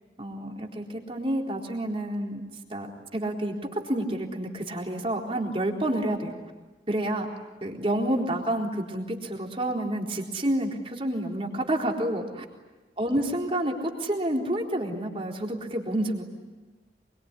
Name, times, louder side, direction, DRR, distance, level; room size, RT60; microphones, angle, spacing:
voice 1, 0.2-2.4 2.7-6.4 6.9-7.3 7.6-12.4 13.0-16.2, right 1 dB, 30° right, 0 dB, 4.0 m, -29 dB
25.5 x 23.5 x 9.8 m, 1.2 s
head